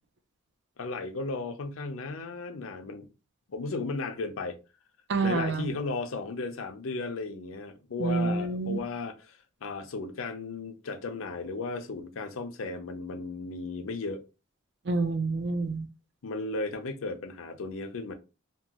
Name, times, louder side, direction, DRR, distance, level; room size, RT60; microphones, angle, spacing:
voice 1, 0.8-3.1 3.5-4.6 5.2-14.2 16.2-18.1, left 3 dB, 85° left, 0.5 m, -35 dB
voice 2, 5.1-5.7 8.0-8.8 14.9-15.9, right 3 dB, 55° right, 0.5 m, -28 dB
3.0 x 2.2 x 2.8 m
head